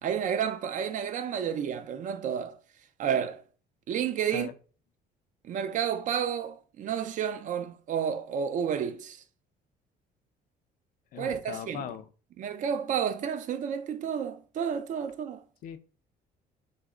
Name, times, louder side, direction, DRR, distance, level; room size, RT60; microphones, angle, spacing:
voice 1, 0.0-2.6 3.0-3.4 3.9-4.5 5.4-9.2 11.1-11.8 12.4-15.4, right 8 dB, 50° right, 0.4 m, -31 dB
voice 2, 11.1-12.1 15.6-15.8, left 10 dB, 55° left, 0.4 m, -39 dB
3.3 x 2.0 x 3.6 m
cardioid pair, 110°, 17 cm